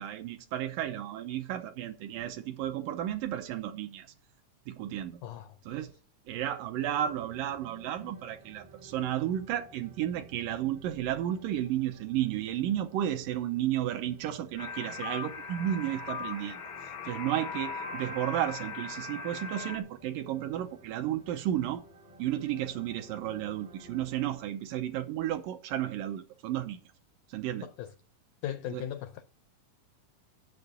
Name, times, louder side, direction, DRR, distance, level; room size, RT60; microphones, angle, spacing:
voice 1, 0.0-4.1 4.7-5.2 5.7-5.9 6.3-16.6 17.1-21.8 22.2-26.8 27.3-27.7 28.7-28.8, right 11 dB, 75° right, 2.3 m, -33 dB
voice 2, 5.2-5.6 27.6-27.9 28.4-29.2, left 11 dB, 85° left, 1.7 m, -38 dB
sound 1, 6.7-24.4, right 2 dB, 50° right, 1.4 m, -55 dB
sound 2, 14.6-19.8, left 4 dB, 70° left, 1.2 m, -39 dB
8.2 x 7.0 x 6.8 m
omnidirectional pair, 4.2 m